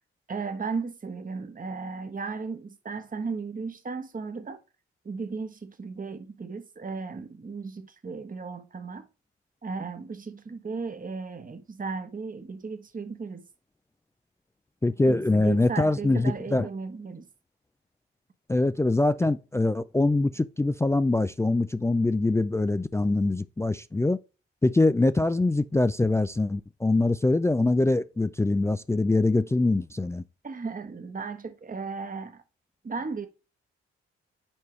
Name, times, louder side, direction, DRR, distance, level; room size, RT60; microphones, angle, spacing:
voice 1, 0.3-4.6 5.0-9.1 9.6-13.5 15.1-17.3 30.4-32.4 32.8-33.3, right 4 dB, 30° right, 1.1 m, -35 dB
voice 2, 14.8-16.7 18.5-24.2 24.6-30.2, left 2 dB, 10° left, 0.3 m, -23 dB
7.1 x 4.7 x 3.1 m
hypercardioid pair, 45°, 29 cm